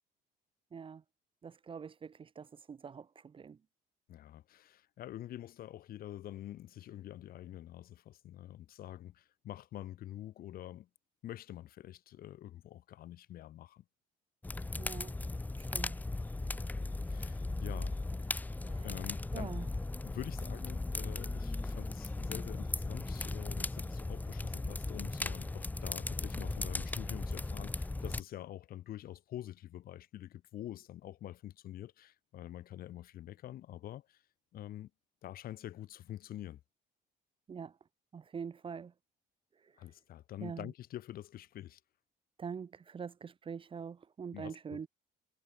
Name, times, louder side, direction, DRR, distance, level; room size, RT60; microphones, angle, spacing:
voice 1, 0.7-1.0 1.4-3.6 14.8-15.2 15.6-16.0 18.6-19.7 37.5-37.8 38.1-38.9 39.5-39.9 40.4-40.7 42.4-44.9, right 6 dB, 30° right, 1.0 m, -45 dB
voice 2, 4.1-10.9 11.2-13.8 17.1-17.9 18.8-19.5 20.0-34.2 34.5-34.9 35.2-36.6 39.8-41.8 44.3-44.8, left 13 dB, 60° left, 1.2 m, -46 dB
sound 1, 14.4-28.2, left 2 dB, 10° left, 0.6 m, -37 dB
cardioid pair, 110°, 17 cm